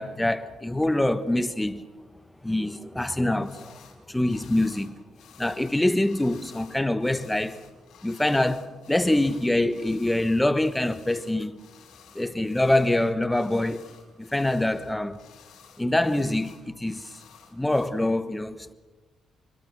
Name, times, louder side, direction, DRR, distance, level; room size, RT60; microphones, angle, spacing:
voice 1, 0.0-1.8 2.4-3.8 4.1-4.9 5.4-7.6 8.0-11.6 12.1-13.8 14.2-15.2 15.8-17.1 17.5-18.7, left 1 dB, 10° left, 1.1 m, -25 dB
sound 1, 3.4-4.0 4.2-17.9, left 8 dB, 75° left, 4.6 m, -53 dB
27.5 x 21.0 x 6.5 m
cardioid pair, 90°, 0 cm